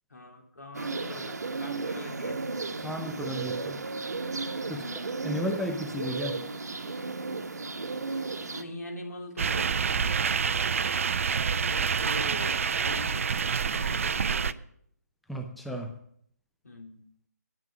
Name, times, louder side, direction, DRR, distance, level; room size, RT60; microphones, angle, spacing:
voice 1, 0.1-2.4 4.7-4.9 8.5-10.2 11.4-14.6 16.6-17.0, left 2 dB, 75° left, 1 dB, 3.4 m, -42 dB
sound 1, 0.7-8.6, right 3 dB, 70° right, 1.1 m, -34 dB
voice 2, 2.8-3.8 4.7-6.4 15.3-15.9, equal, ahead, 4 dB, 0.6 m, -34 dB
sound 2, 9.4-14.5, right 6 dB, 50° right, 0.5 m, -27 dB
10.0 x 9.1 x 6.1 m, 0.66 s
figure-of-eight pair, 150°, 9 cm